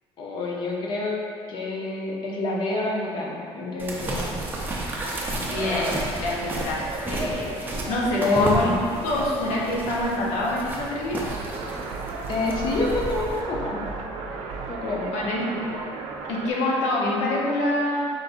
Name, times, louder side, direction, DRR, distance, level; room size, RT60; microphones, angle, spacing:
voice 1, 0.2-1.2 1.5-4.4 8.1-8.7 12.3-13.8 14.7-15.1, left 3 dB, 45° left, -2 dB, 0.7 m, -27 dB
sound 1, 3.8-13.4, right 1 dB, 15° right, 0.5 m, -31 dB
voice 2, 5.4-8.8 9.0-11.2 15.1-15.6 16.3-18.1, left 1 dB, 85° left, -4 dB, 0.9 m, -26 dB
sound 2, 11.3-16.5, right 4 dB, 70° right, 0.4 m, -34 dB
4.7 x 2.6 x 3.7 m, 2.4 s
cardioid pair, 170°, 11 cm